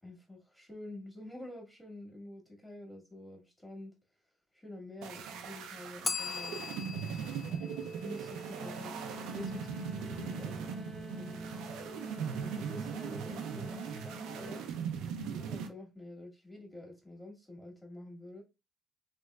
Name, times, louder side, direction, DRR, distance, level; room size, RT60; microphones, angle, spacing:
voice 1, 0.0-3.9 4.5-6.7 7.4-11.4 12.3-14.6 15.3-18.4, left 1 dB, 10° left, 1.8 m, -48 dB
sound 1, 5.0-15.7, right 7 dB, 85° right, 0.4 m, -39 dB
Bell, 6.0-8.9, left 5 dB, 35° left, 0.3 m, -40 dB
sound 2, 8.6-14.7, equal, 15° right, 1.1 m, -46 dB
3.4 x 2.9 x 2.3 m
cardioid pair, 85°, 0 cm